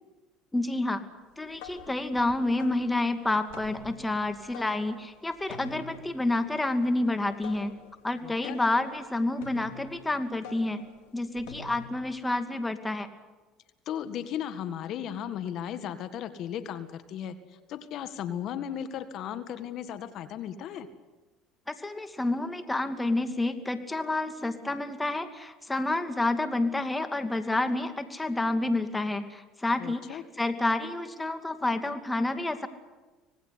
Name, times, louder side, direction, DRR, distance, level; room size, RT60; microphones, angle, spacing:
voice 1, 0.5-1.0 1.4-7.7 8.0-10.8 11.1-13.1 21.7-32.7, left 2 dB, 10° left, 8 dB, 2.6 m, -29 dB
sound 1, 1.3-12.1, left 5 dB, 80° left, 3.5 m, -48 dB
voice 2, 8.2-8.6 13.9-20.9 29.8-30.2, left 9 dB, 60° left, 11 dB, 1.8 m, -36 dB
26.0 x 19.0 x 9.7 m, 1.2 s
supercardioid pair, 85°, 0 cm